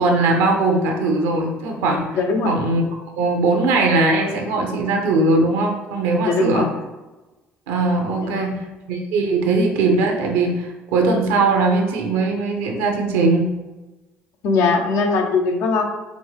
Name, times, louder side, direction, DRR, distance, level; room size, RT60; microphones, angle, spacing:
voice 1, 0.0-2.1 2.4-2.8 3.2-6.7 7.7-8.6 8.9-13.5, right 3 dB, 90° right, 2 dB, 0.7 m, -20 dB
voice 2, 2.2-2.6 6.2-6.7 8.2-8.5 14.4-15.8, left 4 dB, 70° left, 3 dB, 0.7 m, -20 dB
5.0 x 2.2 x 3.2 m, 1.1 s
supercardioid pair, 65°, 5 cm